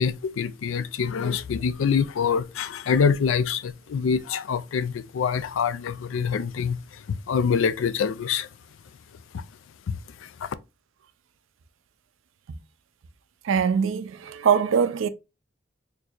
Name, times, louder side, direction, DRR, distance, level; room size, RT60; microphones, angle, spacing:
voice 1, 0.0-6.8 7.1-8.5 9.9-10.0 10.4-10.5, left 6 dB, 85° left, 0.4 m, -25 dB
voice 2, 13.4-15.1, right 7 dB, 85° right, 0.4 m, -22 dB
4.3 x 2.7 x 2.4 m
head